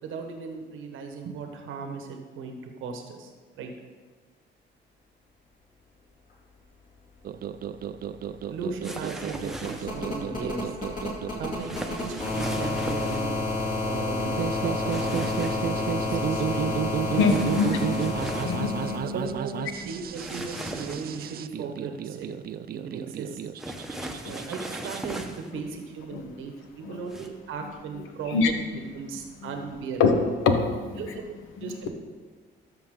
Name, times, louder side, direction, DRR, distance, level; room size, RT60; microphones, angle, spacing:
voice 1, 0.0-3.7 8.5-10.7 11.4-13.4 13.8-16.8 17.1-18.2 19.0-22.3 22.7-23.4 24.2-30.1 31.0-31.9, right 5 dB, 85° right, 4 dB, 1.1 m, -37 dB
sound 1, 7.2-25.0, right 9 dB, 50° right, 0.4 m, -33 dB
sound 2, 7.7-7.8 8.1-19.0 20.4-20.5, left 2 dB, 45° left, 2.7 m, -30 dB
sound 3, 8.8-10.0 11.6-13.3 14.9-15.7 17.1-18.6 20.1-21.3 23.6-25.5 27.1-27.3, right 1 dB, ahead, 0.9 m, -38 dB
voice 2, 17.1-18.1 18.4-19.6 26.1-26.2 26.8-27.0 28.3-28.5 29.4-29.5 30.0-30.1 30.4-31.1 31.6-31.7, left 5 dB, 85° left, 5 dB, 1.0 m, -25 dB
13.0 x 5.8 x 3.7 m, 1.4 s
cardioid pair, 90°, 20 cm